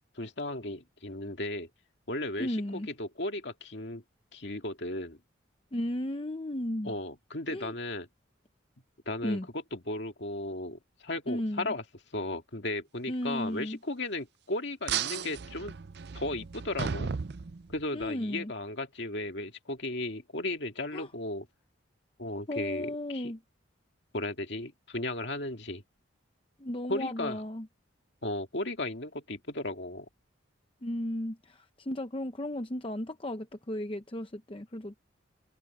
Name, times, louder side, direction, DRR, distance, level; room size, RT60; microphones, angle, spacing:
voice 1, 0.1-1.7 2.1-4.0 4.3-5.2 6.8-8.1 9.1-11.8 12.1-15.7 16.1-17.1 17.7-21.5 22.2-23.3 24.1-25.8 26.9-27.4 28.2-30.1, left 2 dB, 55° left, 2.4 m, -35 dB
voice 2, 2.4-2.9 5.7-6.9 7.5-7.7 9.2-9.5 11.3-11.7 13.1-13.8 17.9-18.5 20.9-21.1 22.5-23.4 26.6-27.7 30.8-35.0, left 1 dB, 25° left, 0.8 m, -34 dB
sound 1, 14.9-18.1, right 6 dB, 55° right, 0.5 m, -35 dB
head